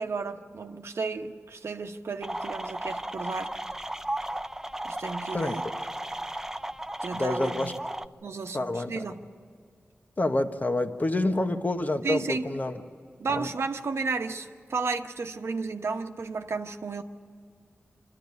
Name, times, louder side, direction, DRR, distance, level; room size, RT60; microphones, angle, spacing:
voice 1, 0.0-3.5 4.8-5.6 7.0-7.8 8.2-9.3 11.3-11.4 12.0-12.5 13.2-17.0, right 4 dB, 75° right, 6 dB, 1.1 m, -33 dB
sound 1, 2.2-8.1, right 1 dB, 10° right, 0.5 m, -35 dB
voice 2, 7.1-7.7 8.5-9.0 10.2-12.8 13.3-13.5, left 2 dB, 40° left, 7 dB, 1.2 m, -27 dB
25.0 x 13.5 x 9.7 m, 2.2 s
wide cardioid pair, 60°, 4 cm